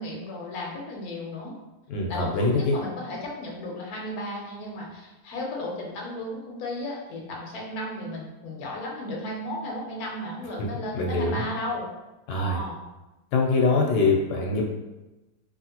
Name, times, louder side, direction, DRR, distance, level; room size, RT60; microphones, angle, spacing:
voice 1, 0.0-1.6 2.1-11.9 12.3-12.8, left 1 dB, 70° left, -2 dB, 1.2 m, -34 dB
voice 2, 1.9-2.8 10.9-11.4 12.3-12.6 13.3-14.6, left 3 dB, 90° left, 0 dB, 1.2 m, -23 dB
3.2 x 2.5 x 2.8 m, 1.1 s
omnidirectional pair, 1.7 m